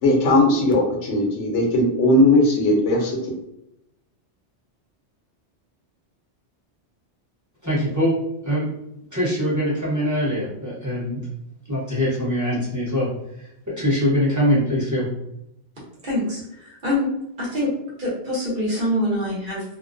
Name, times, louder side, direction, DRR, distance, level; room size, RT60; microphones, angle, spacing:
voice 1, 0.0-3.3, left 1 dB, 80° left, 0 dB, 1.0 m, -18 dB
voice 2, 7.6-8.1 8.5-8.7 9.1-11.2 11.7-13.1 13.7-15.1, equal, 15° right, -8 dB, 0.8 m, -22 dB
voice 3, 16.0-17.1 17.4-17.7 18.0-19.6, left 1 dB, 50° right, -5 dB, 0.9 m, -25 dB
2.4 x 2.1 x 2.4 m, 0.81 s
omnidirectional pair, 1.2 m